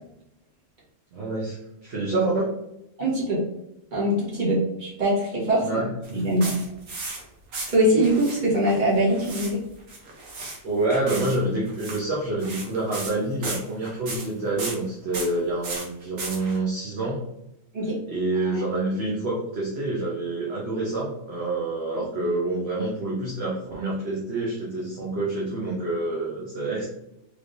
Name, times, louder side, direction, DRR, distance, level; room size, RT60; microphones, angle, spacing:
voice 1, 1.1-2.5 5.6-6.3 10.6-17.2 18.1-26.9, right 2 dB, 55° right, -5 dB, 0.9 m, -27 dB
voice 2, 3.0-3.4 3.9-5.7 6.1-6.5 7.7-9.6 17.7-18.0 18.3-18.6, right 1 dB, 35° right, -6 dB, 1.4 m, -22 dB
sound 1, 6.0-7.2 7.5-8.4 8.6-9.5 9.8-10.6 10.9-11.4 11.7-12.0 12.4-13.1 13.4-14.3 14.6-14.7 15.1-15.3 15.6-16.6, right 3 dB, 85° right, 1.3 m, -35 dB
3.3 x 3.2 x 2.6 m, 0.84 s
omnidirectional pair, 1.3 m